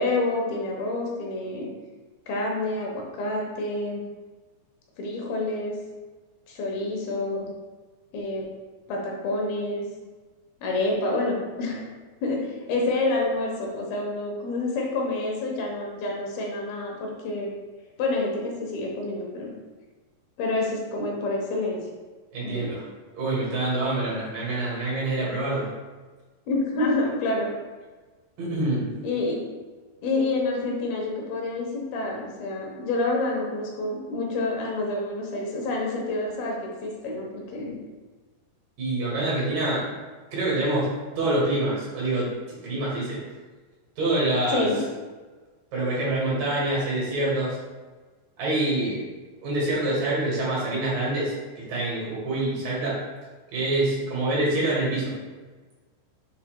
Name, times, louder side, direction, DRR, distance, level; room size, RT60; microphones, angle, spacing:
voice 1, 0.0-1.7 2.3-4.0 5.0-5.7 6.5-7.5 8.1-8.5 8.9-9.9 10.6-11.9 12.2-17.5 18.0-19.5 20.4-21.9 22.4-22.7 26.5-27.5 29.0-29.4 30.0-37.8 44.5-44.8, left 2 dB, 85° left, -1 dB, 3.0 m, -28 dB
voice 2, 22.3-22.8 23.1-25.7 28.4-28.9 38.8-39.9 40.3-43.2 44.0-44.7 45.7-47.6 48.4-49.0 49.4-53.0 53.5-55.1, right 2 dB, 65° right, -6 dB, 3.6 m, -26 dB
7.3 x 5.7 x 2.3 m, 1.3 s
omnidirectional pair, 4.2 m